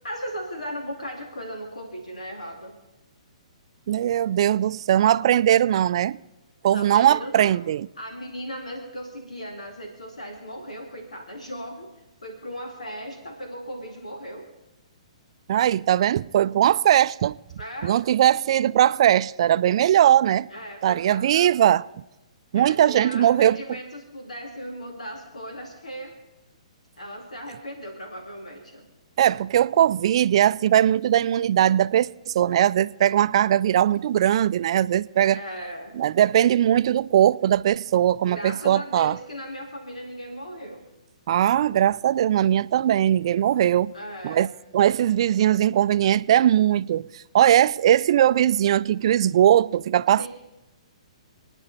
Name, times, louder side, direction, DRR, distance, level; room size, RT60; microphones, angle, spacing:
voice 1, 0.0-2.7 6.7-7.5 8.0-11.9 12.2-14.5 17.6-18.0 20.5-21.5 22.5-26.2 27.0-28.9 35.3-35.9 38.2-40.8 43.9-44.5 50.2-50.3, equal, 85° left, 2.4 m, -37 dB
voice 2, 3.9-6.2 6.6-7.9 15.5-17.4 17.8-20.5 20.8-21.8 22.5-23.6 29.2-35.4 36.0-39.2 41.3-43.9 44.2-44.5 44.7-50.3, right 11 dB, 55° right, 0.4 m, -20 dB
29.5 x 9.9 x 4.1 m
hypercardioid pair, 130°, 4 cm